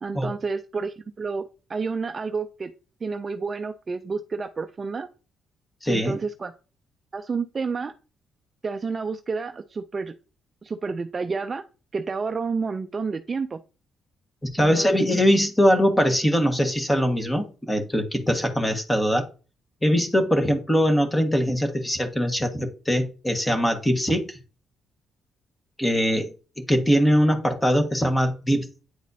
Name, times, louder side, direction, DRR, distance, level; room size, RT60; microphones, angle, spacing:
voice 1, 0.0-2.7 3.0-5.1 5.9-6.5 7.1-7.9 8.6-10.1 10.6-11.6 11.9-13.6 14.6-15.0, right 4 dB, 35° right, 9 dB, 0.4 m, -30 dB
voice 2, 5.8-6.2 14.4-19.2 19.8-24.4 25.8-26.3 26.6-28.7, equal, 10° left, 6 dB, 1.4 m, -22 dB
9.3 x 4.1 x 2.7 m, 0.35 s
cardioid pair, 90°, 0 cm